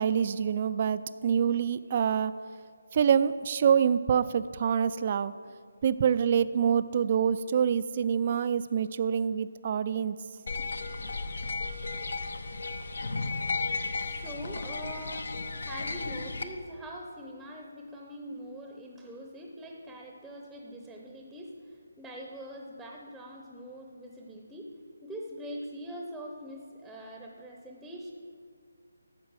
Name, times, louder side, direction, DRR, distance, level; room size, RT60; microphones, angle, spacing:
voice 1, 0.0-2.3 2.9-5.3 5.8-10.2, right 7 dB, 40° right, 14 dB, 0.3 m, -26 dB
sound 1, 10.5-16.4, left 3 dB, 70° left, 0.8 m, -34 dB
voice 2, 14.0-24.7 25.0-28.1, equal, ahead, 0 dB, 0.7 m, -43 dB
12.5 x 7.4 x 4.8 m, 2.2 s
figure-of-eight pair, 155°, 0 cm